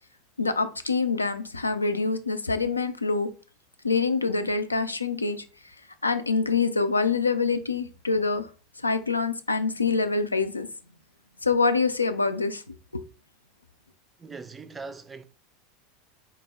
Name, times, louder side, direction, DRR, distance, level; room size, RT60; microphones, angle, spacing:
voice 1, 0.4-3.3 3.8-5.4 6.0-8.5 8.8-10.7 11.4-13.0, left 4 dB, 85° left, 0.3 m, -25 dB
voice 2, 14.2-15.2, right 4 dB, 15° right, 0.4 m, -40 dB
4.4 x 2.0 x 3.6 m
figure-of-eight pair, 80°, 0 cm